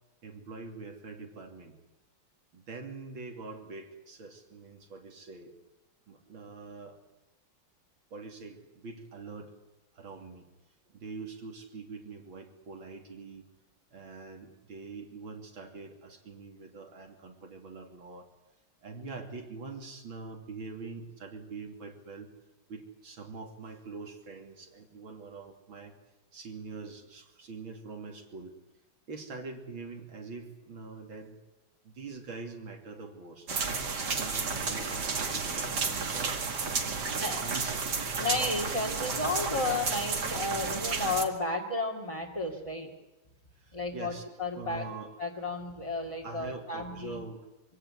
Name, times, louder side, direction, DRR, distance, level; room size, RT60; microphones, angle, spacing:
voice 1, 0.2-1.7 2.5-5.5 6.1-7.0 8.1-9.5 9.9-10.4 10.9-13.5 13.9-18.3 18.8-22.3 22.7-25.9 26.3-28.5 29.1-31.4 31.8-33.5 34.1-36.4 36.9-37.8 43.6-44.2 44.6-45.1 46.2-47.5, right 4 dB, 70° right, 3 dB, 3.6 m, -44 dB
sound 1, 33.5-41.2, right 4 dB, 55° right, 2.6 m, -32 dB
voice 2, 37.2-37.5 38.2-42.9 43.7-44.8 45.2-47.2, left 2 dB, 15° left, -2 dB, 2.4 m, -33 dB
24.5 x 16.5 x 9.9 m, 1.0 s
omnidirectional pair, 2.2 m